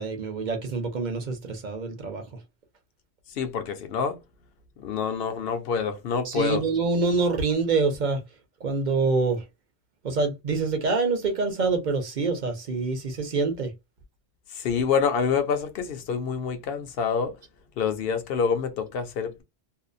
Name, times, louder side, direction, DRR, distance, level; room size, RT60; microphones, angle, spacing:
voice 1, 0.0-2.4 6.2-8.2 8.6-9.4 10.0-13.7, right 4 dB, 45° right, 0.8 m, -26 dB
voice 2, 3.3-4.2 4.8-6.6 14.5-17.4 17.8-19.4, left 6 dB, 65° left, 0.8 m, -27 dB
2.7 x 2.1 x 2.5 m
omnidirectional pair, 1.1 m